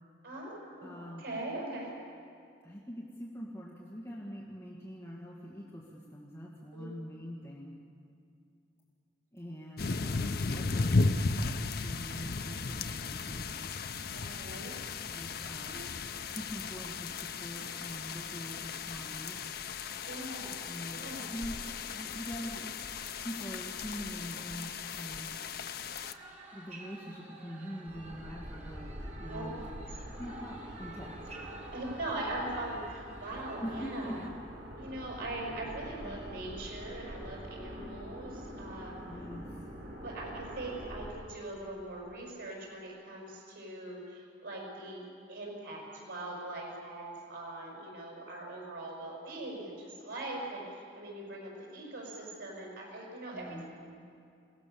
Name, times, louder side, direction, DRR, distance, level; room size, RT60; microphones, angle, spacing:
voice 1, 0.2-1.9 6.7-6.9 14.1-14.8 15.5-15.8 20.1-20.6 20.9-21.3 29.2-29.5 31.7-34.2 34.8-39.0 40.0-53.6, right 2 dB, 90° right, -3 dB, 6.8 m, -41 dB
voice 2, 0.8-1.3 2.6-7.7 9.3-11.2 11.8-13.6 15.1-15.8 16.4-17.1 17.4-19.4 20.7-22.8 23.2-25.3 26.5-29.7 30.2-31.2 33.6-34.2 36.0-36.3 39.1-39.6 53.3-53.6, equal, 15° left, -5 dB, 2.2 m, -44 dB
sound 1, 9.8-26.1, left 4 dB, 55° left, 0.7 m, -35 dB
sound 2, 26.0-34.3, right 3 dB, 35° right, 2.7 m, -52 dB
sound 3, 27.9-41.1, equal, 60° right, 3.9 m, -45 dB
28.5 x 18.0 x 7.1 m, 2.4 s
head